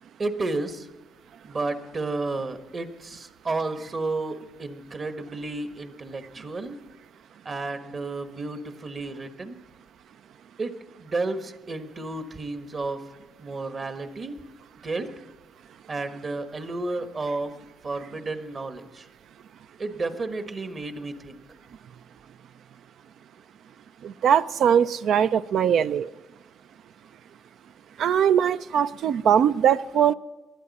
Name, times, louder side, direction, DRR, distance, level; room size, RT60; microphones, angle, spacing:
voice 1, 0.2-0.9 1.4-6.8 7.4-9.6 10.6-10.7 11.0-13.0 13.4-14.4 14.8-15.1 15.9-17.5 17.8-19.1 19.8-21.4, right 3 dB, 40° right, 8 dB, 1.4 m, -32 dB
voice 2, 24.2-26.1 28.0-30.1, right 8 dB, 70° right, 14 dB, 0.4 m, -21 dB
20.0 x 12.5 x 4.2 m, 1.2 s
cardioid pair, 90°, 0 cm